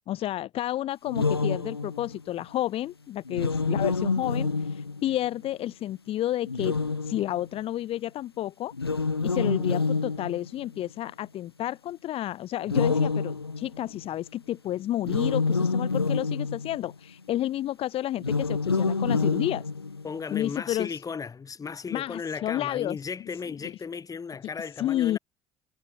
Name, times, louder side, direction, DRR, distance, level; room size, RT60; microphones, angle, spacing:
voice 1, 0.1-6.8 7.0-8.7 9.2-19.7 20.3-21.0 21.9-23.0 23.6-23.7 24.8-25.2, left 13 dB, 50° left, 1.2 m, -31 dB
sound 1, 1.1-2.2 3.3-5.3 6.4-7.6 8.7-10.8 12.7-14.0 15.0-16.9 18.2-20.2, left 4 dB, 90° left, 0.8 m, -27 dB
voice 2, 20.0-25.2, left 5 dB, 30° left, 2.6 m, -35 dB
figure-of-eight pair, 55°, 13 cm